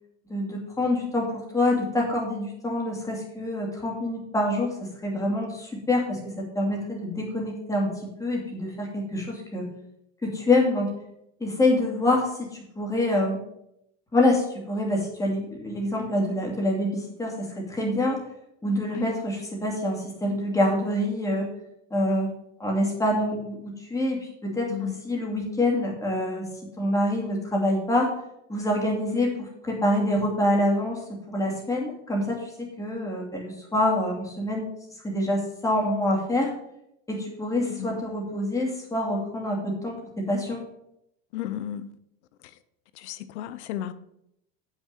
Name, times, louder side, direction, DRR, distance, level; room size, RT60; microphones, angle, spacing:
voice 1, 0.3-7.9 8.2-9.6 10.2-10.9 11.4-12.5 12.8-13.4 14.1-18.2 18.6-21.5 21.9-22.3 22.6-24.7 25.0-26.5 26.8-28.1 28.5-31.0 31.3-34.7 35.0-36.5 37.1-40.6, left 1 dB, 10° left, 2.4 m, -26 dB
voice 2, 24.7-25.0 37.7-38.0 41.3-41.9 42.4-42.5 43.0-43.9, left 12 dB, 80° left, 0.8 m, -33 dB
7.3 x 6.1 x 6.6 m
supercardioid pair, 140°, 33 cm